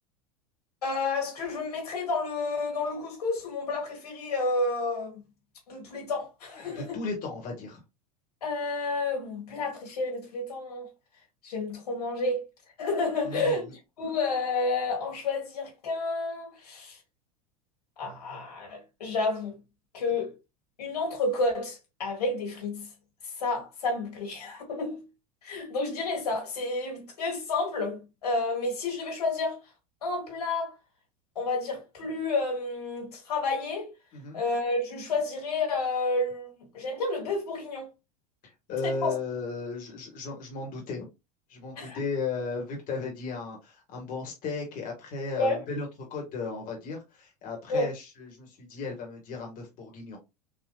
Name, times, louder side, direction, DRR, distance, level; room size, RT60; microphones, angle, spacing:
voice 1, 0.8-5.2 5.7-7.0 8.4-10.9 11.4-12.4 12.8-17.0 18.0-19.6 19.9-20.4 20.8-22.9 23.2-25.0 25.4-29.6 30.0-30.7 31.4-33.9 34.3-37.9 38.8-39.1 41.7-42.0 45.4-45.6 47.7-47.9, left 3 dB, 85° left, 1.8 m, -30 dB
voice 2, 6.7-7.8 13.2-13.6 34.1-34.4 38.7-41.1 41.5-50.2, left 4 dB, 45° left, 1.7 m, -35 dB
3.9 x 2.7 x 2.4 m
hypercardioid pair, 95°, 19 cm